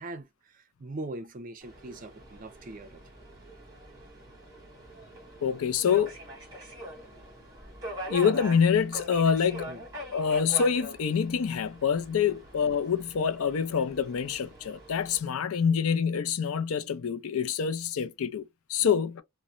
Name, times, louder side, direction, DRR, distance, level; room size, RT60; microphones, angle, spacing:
voice 1, 0.0-3.0 9.6-9.8 12.3-12.4 18.8-18.9, right 2 dB, 40° right, 0.5 m, -41 dB
Subway metro underground, 1.6-15.2, equal, 20° right, 1.5 m, -43 dB
voice 2, 5.4-6.1 7.9-9.7 10.1-18.4 18.7-19.2, left 7 dB, 75° left, 0.4 m, -26 dB
3.0 x 2.1 x 2.4 m
head